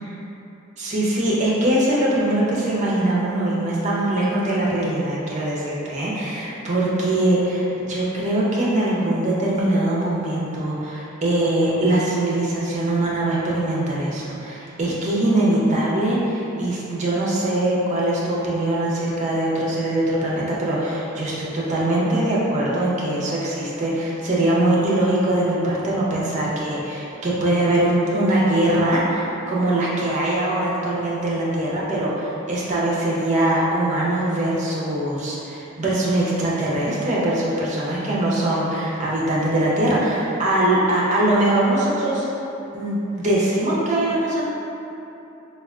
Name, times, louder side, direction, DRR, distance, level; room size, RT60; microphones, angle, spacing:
voice 1, 0.8-42.2 42.7-44.4, right 1 dB, 35° right, -6 dB, 0.5 m, -22 dB
3.4 x 2.3 x 2.3 m, 2.9 s
head